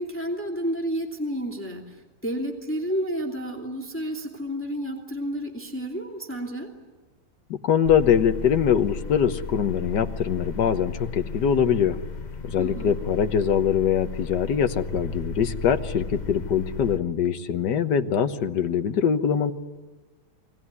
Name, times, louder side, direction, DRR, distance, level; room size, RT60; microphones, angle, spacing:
voice 1, 0.0-6.7 12.6-13.0, equal, 5° left, 2 dB, 2.6 m, -31 dB
voice 2, 7.5-12.0 12.4-19.5, left 8 dB, 60° left, 9 dB, 1.6 m, -23 dB
sound 1, 7.8-17.0, left 3 dB, 40° left, 0.6 m, -35 dB
29.5 x 21.0 x 9.7 m, 1.3 s
omnidirectional pair, 2.2 m